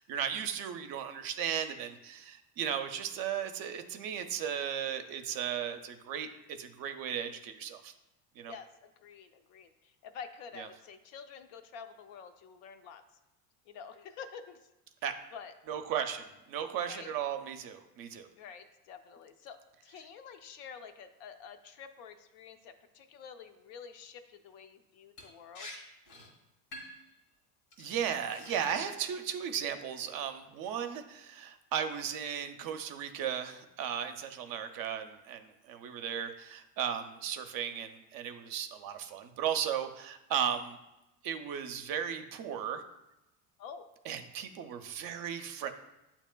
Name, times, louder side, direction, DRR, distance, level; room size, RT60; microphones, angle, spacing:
voice 1, 0.0-7.9 8.4-8.5 10.6-10.7 15.0-15.1 15.7-18.3 27.8-40.8 41.2-42.8 44.1-45.7, right 8 dB, 50° right, 7 dB, 0.5 m, -36 dB
voice 2, 9.0-13.0 13.7-14.6 15.3-15.5 16.9-17.1 18.4-25.7 43.6-43.9, left 6 dB, 65° left, 8 dB, 0.6 m, -48 dB
Liquid, 25.2-25.3 25.5-25.8 26.1-26.3 26.7-27.1 27.7-27.9 28.3-29.2 29.6-30.0, left 1 dB, 85° left, 1.6 m, -48 dB
8.3 x 2.9 x 2.2 m, 0.93 s
supercardioid pair, 95°, 45 cm